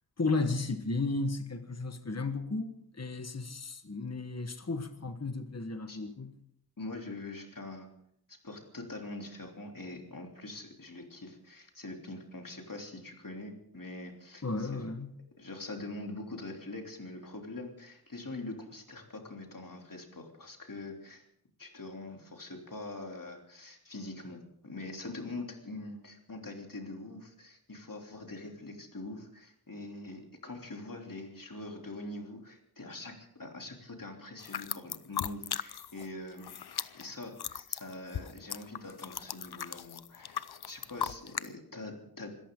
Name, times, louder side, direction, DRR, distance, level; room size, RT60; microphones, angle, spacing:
voice 1, 0.2-6.4 14.4-15.1, left 3 dB, 40° left, 8 dB, 1.4 m, -34 dB
voice 2, 6.8-7.9 8.3-14.9 15.4-21.3 21.6-36.5 36.8-42.3, left 2 dB, 60° left, 2 dB, 3.3 m, -44 dB
sound 1, 34.4-36.1 36.3-41.5, left 8 dB, 80° left, 0.6 m, -38 dB
26.0 x 14.0 x 3.8 m, 0.70 s
wide cardioid pair, 45°, 38 cm